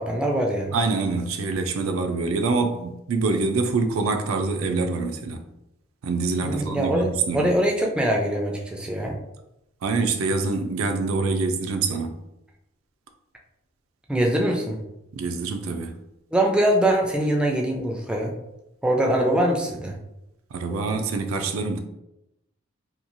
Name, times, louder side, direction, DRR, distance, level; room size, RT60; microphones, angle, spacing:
voice 1, 0.0-0.7 6.4-9.2 14.1-14.8 16.3-18.3 18.8-20.0, right 1 dB, 5° right, 0 dB, 0.4 m, -23 dB
voice 2, 0.7-5.4 6.0-7.5 9.8-12.2 15.1-16.0 20.5-21.8, right 3 dB, 85° right, 6 dB, 0.4 m, -25 dB
3.0 x 2.3 x 2.5 m, 0.86 s
head